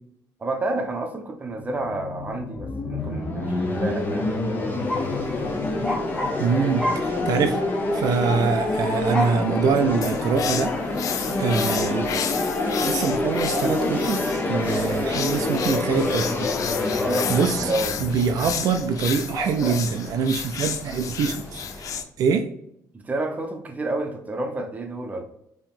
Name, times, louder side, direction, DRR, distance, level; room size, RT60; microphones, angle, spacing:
voice 1, 0.4-4.3 16.8-18.5 22.9-25.2, right 2 dB, 20° right, 4 dB, 0.8 m, -30 dB
sound 1, 1.6-19.4, left 2 dB, 30° left, 0.8 m, -27 dB
sound 2, 4.8-22.0, left 1 dB, 10° left, 1.5 m, -36 dB
voice 2, 6.4-7.6 7.9-11.0 11.4-12.1 12.9-16.5 17.3-17.7 18.0-21.6 22.2-22.5, right 6 dB, 65° right, 6 dB, 0.4 m, -24 dB
sound 3, 10.0-22.0, left 8 dB, 55° left, 0.5 m, -32 dB
4.6 x 3.0 x 3.7 m, 0.75 s
cardioid pair, 130°, 7 cm